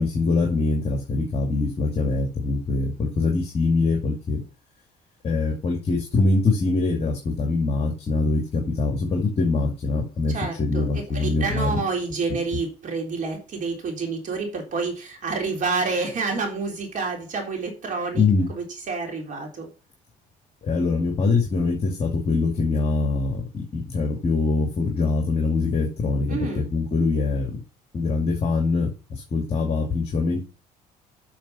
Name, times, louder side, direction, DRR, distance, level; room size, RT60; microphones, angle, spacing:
voice 1, 0.0-4.4 5.2-11.8 18.1-18.5 20.6-27.6 27.9-30.4, left 3 dB, 35° left, 2 dB, 2.4 m, -23 dB
voice 2, 10.3-19.7 26.3-26.7, right 4 dB, 50° right, 2 dB, 3.8 m, -29 dB
7.3 x 6.5 x 5.8 m, 0.33 s
cardioid pair, 110°, 17 cm